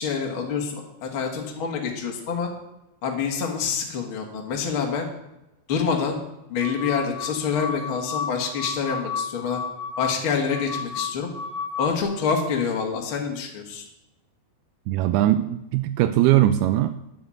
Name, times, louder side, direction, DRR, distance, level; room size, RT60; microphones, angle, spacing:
voice 1, 0.0-2.5 3.0-5.1 5.7-6.2 6.5-9.6 10.0-11.3 11.8-13.8, left 6 dB, 50° left, 1 dB, 1.7 m, -27 dB
sound 1, 6.6-12.0, left 6 dB, 10° right, 2.4 m, -32 dB
voice 2, 14.9-16.9, right 13 dB, 80° right, 11 dB, 2.4 m, -20 dB
10.5 x 7.8 x 7.7 m, 0.93 s
omnidirectional pair, 4.7 m